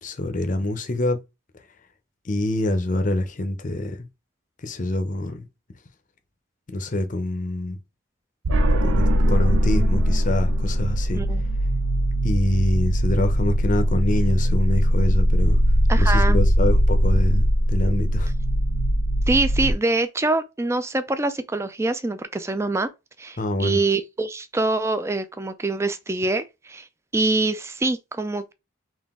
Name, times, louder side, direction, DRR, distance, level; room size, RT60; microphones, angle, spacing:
voice 1, 0.0-1.2 2.2-4.1 4.6-5.5 6.7-7.8 8.8-11.2 12.2-15.6 16.0-18.3 23.4-23.8, left 1 dB, 40° left, 0.6 m, -25 dB
sound 1, 8.4-19.7, equal, 90° right, 0.6 m, -20 dB
voice 2, 15.9-16.4 19.3-22.9 23.2-26.9 27.1-28.5, right 2 dB, 15° right, 0.3 m, -24 dB
3.9 x 2.4 x 3.6 m
head